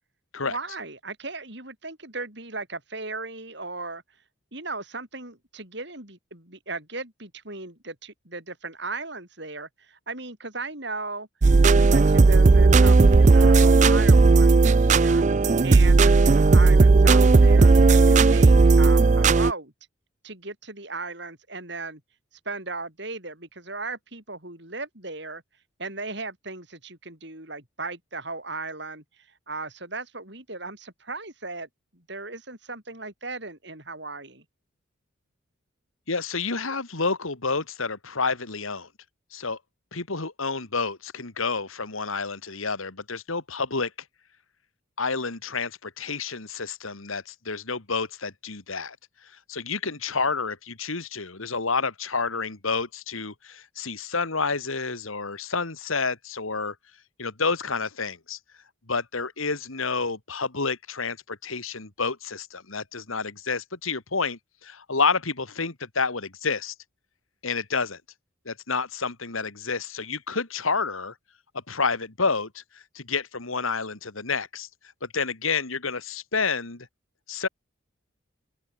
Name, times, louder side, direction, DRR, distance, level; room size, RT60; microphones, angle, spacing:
voice 1, 0.4-4.0 4.5-11.3 11.7-15.2 15.6-19.7 20.2-22.0 22.4-25.4 25.8-29.0 29.5-34.4, right 3 dB, 55° right, 6.4 m, -36 dB
sound 1, 11.4-19.5, right 3 dB, 35° right, 0.4 m, -15 dB
voice 2, 36.1-38.9 39.3-39.6 39.9-43.9 45.0-49.0 49.2-56.7 57.2-58.4 58.9-66.7 67.4-68.0 68.5-71.1 71.5-74.7 75.0-76.9 77.3-77.5, left 4 dB, 85° left, 2.4 m, -29 dB
open air
head